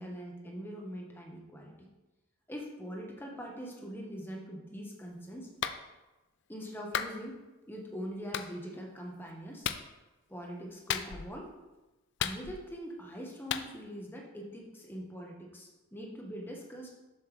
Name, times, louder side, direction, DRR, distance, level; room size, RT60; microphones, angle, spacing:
voice 1, 0.0-1.7 2.5-5.5 6.5-9.7 10.3-11.5 12.2-17.0, equal, 10° left, 0 dB, 1.1 m, -43 dB
Clapping, 5.6-5.8 6.9-7.2 8.3-8.5 9.6-9.9 10.9-11.4 12.2-12.8 13.5-13.7, left 9 dB, 55° left, 0.4 m, -34 dB
7.3 x 6.8 x 3.4 m, 1.1 s
head